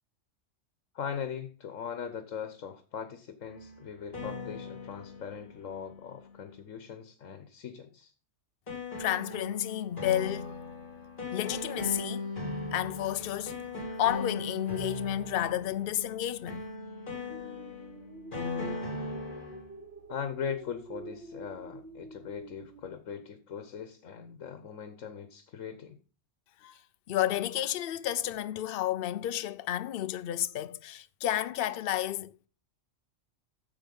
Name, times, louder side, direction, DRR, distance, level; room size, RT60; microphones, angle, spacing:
voice 1, 0.9-8.1 20.1-26.0, left 7 dB, 90° left, 1.3 m, -40 dB
sound 1, 3.4-6.4 8.7-19.7, left 3 dB, 40° left, 3.4 m, -38 dB
voice 2, 9.0-10.6 11.3-12.3 12.7-13.6 14.0-16.6 26.6-26.8 27.1-32.3, left 12 dB, 55° left, 0.7 m, -31 dB
sound 2, 17.3-22.9, right 2 dB, 55° right, 1.6 m, -48 dB
9.0 x 7.2 x 5.3 m
omnidirectional pair, 1.3 m